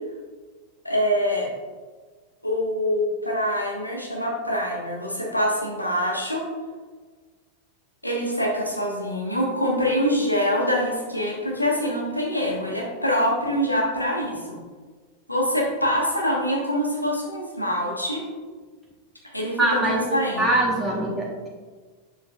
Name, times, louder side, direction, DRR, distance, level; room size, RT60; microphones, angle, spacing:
voice 1, 0.8-1.5 2.4-6.4 8.0-14.6 15.3-18.2 19.3-20.5, equal, 85° left, -2 dB, 1.2 m, -25 dB
voice 2, 19.6-21.5, right 2 dB, 10° right, -3 dB, 1.0 m, -23 dB
7.8 x 6.7 x 2.3 m, 1.4 s
figure-of-eight pair, 90°, 0 cm